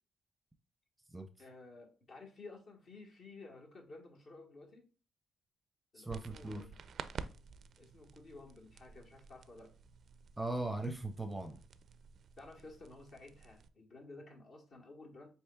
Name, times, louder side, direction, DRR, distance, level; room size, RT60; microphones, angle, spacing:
voice 1, 1.4-4.9 5.9-6.7 7.8-9.7 12.4-15.3, left 3 dB, 55° left, 1.4 m, -53 dB
voice 2, 6.0-6.7 10.4-11.6, right 2 dB, 10° right, 0.6 m, -39 dB
sound 1, 6.1-13.7, right 6 dB, 60° right, 0.4 m, -51 dB
7.7 x 2.9 x 2.3 m
cardioid pair, 90°, 0 cm